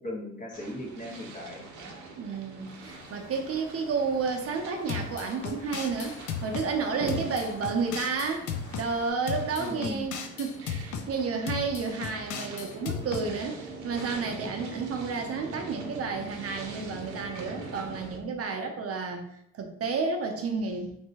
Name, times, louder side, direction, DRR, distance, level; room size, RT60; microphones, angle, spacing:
voice 1, 0.0-1.6 9.6-10.0, left 1 dB, 25° left, -2 dB, 1.0 m, -37 dB
sound 1, 0.5-18.2, right 3 dB, 90° right, 0.7 m, -44 dB
voice 2, 2.2-8.5 8.8-19.2 19.5-20.9, right 4 dB, 50° right, 3 dB, 0.5 m, -31 dB
sound 2, 2.8-9.1, left 2 dB, 50° left, 1.1 m, -50 dB
sound 3, 4.9-6.7 7.1-8.9 9.3-11.1 11.5-13.3, left 7 dB, 80° left, 0.5 m, -35 dB
3.2 x 2.7 x 2.8 m, 0.74 s
cardioid pair, 90°, 30 cm